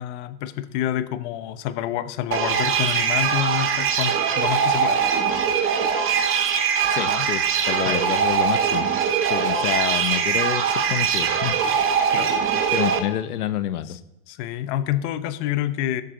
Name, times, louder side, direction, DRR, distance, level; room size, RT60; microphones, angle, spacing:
voice 1, 0.0-5.0 7.0-7.3 7.8-8.0 12.1-12.3 13.9-14.0 14.3-16.0, left 11 dB, 50° left, 13 dB, 1.0 m, -28 dB
sound 1, 2.3-13.0, right 7 dB, 30° right, 1.3 m, -22 dB
voice 2, 6.9-8.8 9.3-11.6 12.2-12.3 12.7-14.0, left 11 dB, 85° left, 14 dB, 0.9 m, -28 dB
17.5 x 6.8 x 3.9 m, 0.93 s
hypercardioid pair, 125°, 44 cm